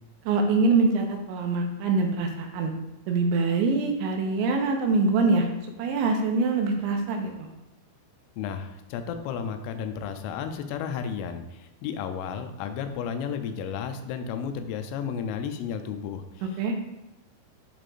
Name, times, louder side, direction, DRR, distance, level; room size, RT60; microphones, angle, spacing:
voice 1, 0.3-2.7 3.1-5.5 5.8-7.5 16.4-16.7, right 3 dB, 80° right, 3 dB, 2.9 m, -24 dB
voice 2, 8.4-16.5, left 7 dB, 90° left, 8 dB, 3.2 m, -33 dB
11.0 x 5.0 x 2.5 m, 0.94 s
omnidirectional pair, 5.6 m